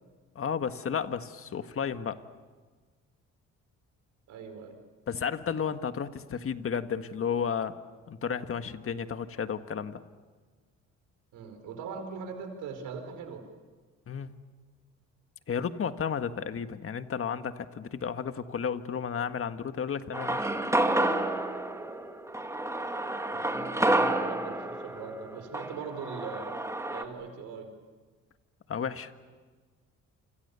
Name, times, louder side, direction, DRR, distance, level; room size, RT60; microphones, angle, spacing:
voice 1, 0.4-2.2 5.1-7.8 8.1-10.0 14.1-14.3 15.5-20.5 28.7-29.1, left 7 dB, 45° left, 9 dB, 1.6 m, -32 dB
voice 2, 4.3-4.8 11.3-13.4 23.3-26.5 26.9-27.7, right 5 dB, 90° right, 6 dB, 4.7 m, -41 dB
sound 1, 20.1-27.0, right 1 dB, 10° right, 2.4 m, -29 dB
28.5 x 26.5 x 7.0 m, 1.4 s
cardioid pair, 90°, 30 cm